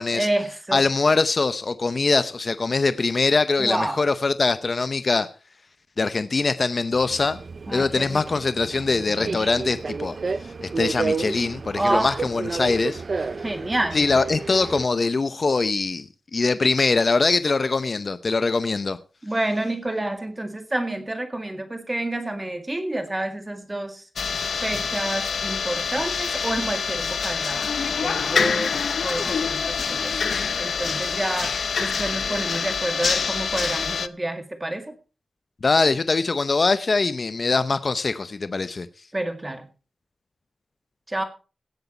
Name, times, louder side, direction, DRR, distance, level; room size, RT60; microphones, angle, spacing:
voice 1, 0.1-0.8 3.6-4.0 7.7-8.2 11.7-12.2 13.4-14.0 19.2-24.0 24.6-28.8 29.0-30.1 30.6-34.9 39.1-39.6 41.1-41.2, right 1 dB, 20° right, 2.0 m, -28 dB
voice 2, 0.7-5.3 6.0-7.4 7.7-10.2 10.6-13.3 13.9-19.0 35.6-38.9, left 3 dB, 45° left, 0.7 m, -22 dB
Subway metro underground, 6.9-14.9, right 4 dB, 50° right, 0.5 m, -31 dB
sound 1, 24.2-34.1, left 6 dB, 80° left, 0.6 m, -26 dB
17.5 x 8.1 x 4.3 m
wide cardioid pair, 125°, 0 cm